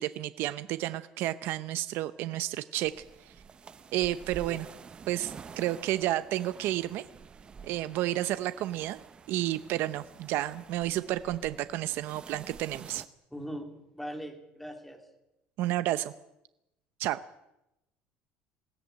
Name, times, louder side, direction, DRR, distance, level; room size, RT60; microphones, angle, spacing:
voice 1, 0.0-2.9 3.3-3.4 3.9-4.7 5.1-7.0 7.6-9.0 9.3-13.0 15.6-16.1 17.0-17.2, right 14 dB, 60° right, 13 dB, 0.8 m, -31 dB
sound 1, 2.8-13.1, right 6 dB, 25° right, 0.9 m, -49 dB
voice 2, 13.3-15.0, equal, 5° left, 5 dB, 2.9 m, -40 dB
21.0 x 16.5 x 9.3 m, 0.91 s
cardioid pair, 160°, 4 cm